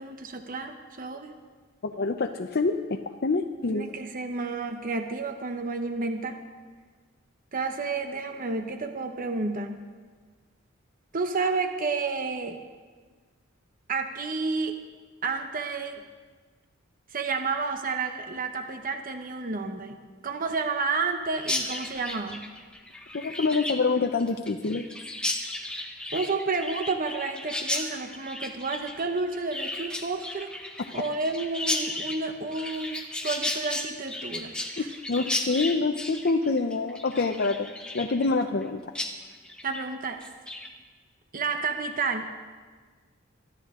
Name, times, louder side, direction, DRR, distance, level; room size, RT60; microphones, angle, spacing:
voice 1, 0.0-1.3 3.7-6.4 7.5-9.8 11.1-12.6 13.9-14.7 15.2-16.0 17.1-22.5 26.1-30.5 30.9-33.0 33.2-34.9 39.6-40.2 41.3-42.3, right 4 dB, 45° right, 6 dB, 0.9 m, -31 dB
voice 2, 1.8-3.9 23.1-24.9 34.8-37.7 37.9-38.9, left 3 dB, 50° left, 4 dB, 0.6 m, -26 dB
Chirp tweet, 21.4-38.7 38.9-39.1 39.4-39.8 40.2-40.7, left 2 dB, 5° left, 1.3 m, -34 dB
23.5 x 13.0 x 3.7 m, 1.5 s
head